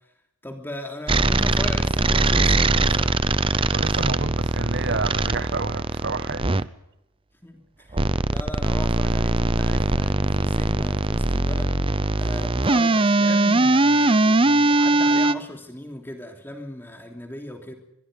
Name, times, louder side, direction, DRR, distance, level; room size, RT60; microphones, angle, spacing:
voice 1, 0.4-3.1 7.4-17.7, left 1 dB, 10° left, 3.1 m, -37 dB
sound 1, 1.1-6.6 7.9-15.3, right 2 dB, 25° right, 0.6 m, -21 dB
voice 2, 3.7-6.7, right 3 dB, 50° right, 1.2 m, -29 dB
23.0 x 23.0 x 5.3 m
head